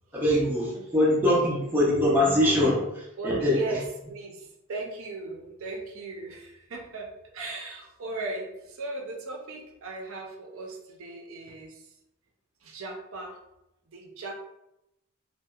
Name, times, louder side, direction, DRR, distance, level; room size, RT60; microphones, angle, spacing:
voice 1, 0.1-3.8, left 1 dB, 10° right, -5 dB, 0.5 m, -23 dB
voice 2, 0.7-1.3 3.2-3.8 4.1-11.9 12.6-13.4 13.9-14.3, right 3 dB, 70° right, 1 dB, 0.5 m, -38 dB
2.7 x 2.0 x 2.3 m, 0.87 s
head